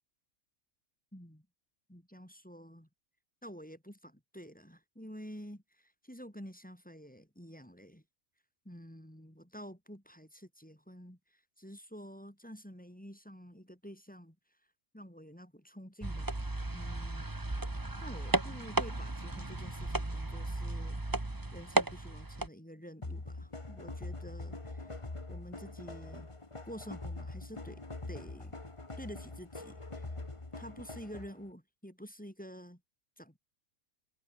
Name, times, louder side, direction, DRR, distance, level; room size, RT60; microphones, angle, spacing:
voice 1, 1.1-1.5 1.9-2.9 3.4-8.0 8.7-14.4 14.9-16.4 16.7-17.3 18.0-25.0 25.3-26.3 26.7-28.5 29.0-30.2 30.6-32.8 33.2-33.4, equal, 5° left, 3.6 m, -49 dB
sound 1, 16.0-22.5, right 2 dB, 15° right, 1.5 m, -35 dB
sound 2, 23.0-31.5, left 2 dB, 20° left, 1.8 m, -43 dB
omnidirectional pair, 1.5 m